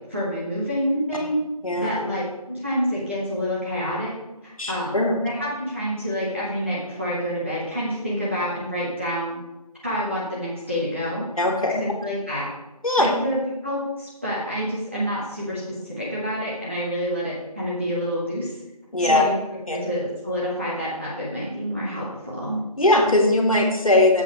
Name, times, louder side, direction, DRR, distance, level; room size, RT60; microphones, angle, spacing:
voice 1, 0.1-1.4 1.8-2.2 2.5-4.1 4.4-9.4 9.8-11.3 11.7-12.5 13.0-18.6 19.0-19.4 19.7-22.6, equal, 20° right, -8 dB, 1.0 m, -28 dB
voice 2, 4.6-5.2 11.4-11.7 12.8-13.1 18.9-19.2 19.7-19.8 22.8-24.2, left 2 dB, 60° left, 1 dB, 1.8 m, -19 dB
7.3 x 4.7 x 5.5 m, 1.0 s
figure-of-eight pair, 170°, 20 cm